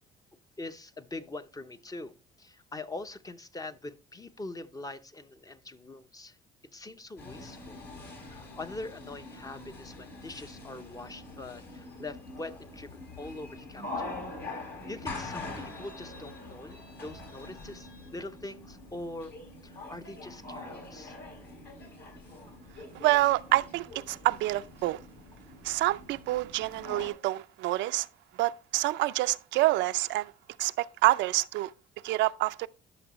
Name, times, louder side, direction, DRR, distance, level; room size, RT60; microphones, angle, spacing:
voice 1, 0.6-6.4 6.7-7.8 8.3-14.1 14.9-19.3 19.6-21.1, left 2 dB, 20° left, 0.7 m, -43 dB
sound 1, 7.2-27.1, left 2 dB, 60° left, 4.3 m, -44 dB
voice 2, 22.9-25.0 25.6-28.1 28.4-30.3 30.6-31.7 32.0-32.7, right 17 dB, 75° right, 0.4 m, -27 dB
12.0 x 6.1 x 3.0 m
cardioid pair, 90°, 19 cm